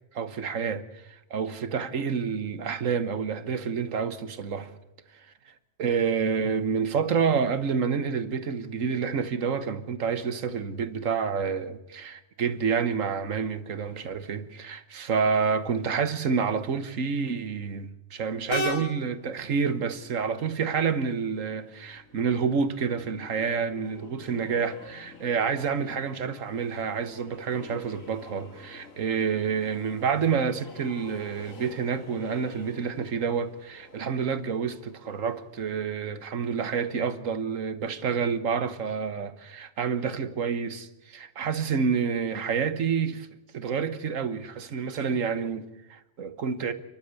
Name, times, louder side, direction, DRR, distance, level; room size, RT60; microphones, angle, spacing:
voice 1, 0.1-4.7 5.8-43.3 43.5-46.7, right 6 dB, 75° right, 1.6 m, -28 dB
Train, 18.5-35.8, left 2 dB, 90° left, 3.1 m, -43 dB
29.5 x 11.5 x 8.2 m
omnidirectional pair, 1.3 m